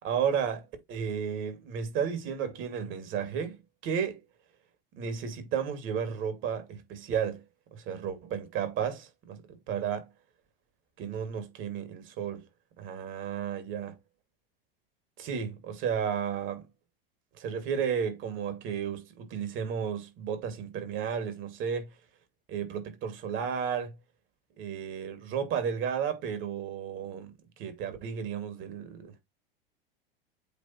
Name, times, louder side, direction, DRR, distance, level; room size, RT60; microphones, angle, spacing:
voice 1, 0.0-4.2 5.0-7.4 7.7-10.1 11.0-12.4 12.8-13.9 15.2-16.7 17.4-21.9 22.5-24.0 24.6-29.2, right 7 dB, 40° right, 2.4 m, -33 dB
8.3 x 3.4 x 4.4 m
hypercardioid pair, 95°, 30 cm